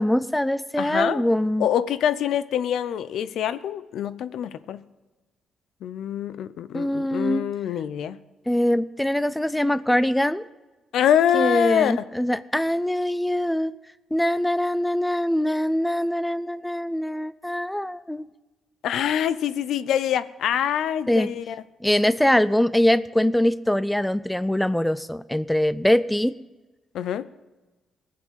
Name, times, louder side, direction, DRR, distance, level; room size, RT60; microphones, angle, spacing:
voice 1, 0.0-1.7 6.7-7.5 8.5-10.5 11.3-13.7 14.1-18.2 21.1-21.3 21.8-26.3, left 1 dB, 5° left, 16 dB, 0.5 m, -23 dB
voice 2, 0.8-1.3 1.6-4.8 5.8-8.2 10.9-11.9 18.8-21.6 26.9-27.3, left 9 dB, 75° left, 15 dB, 0.6 m, -25 dB
18.5 x 7.7 x 7.6 m, 1.2 s
cardioid pair, 90°, 0 cm